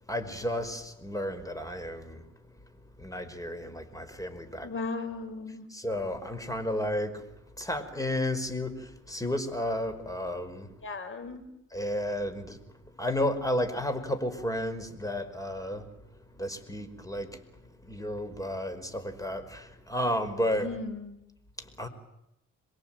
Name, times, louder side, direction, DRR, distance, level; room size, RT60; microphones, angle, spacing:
voice 1, 0.1-2.2 3.0-4.7 5.7-7.2 7.6-10.7 11.7-12.6 13.0-15.9 16.4-17.3 17.8-20.7 21.6-21.9, left 1 dB, 10° left, 9 dB, 5.3 m, -32 dB
voice 2, 4.6-5.7 10.8-11.4 20.6-21.2, left 3 dB, 40° left, 6 dB, 6.7 m, -36 dB
27.0 x 23.0 x 9.1 m, 0.84 s
cardioid pair, 90°, 30 cm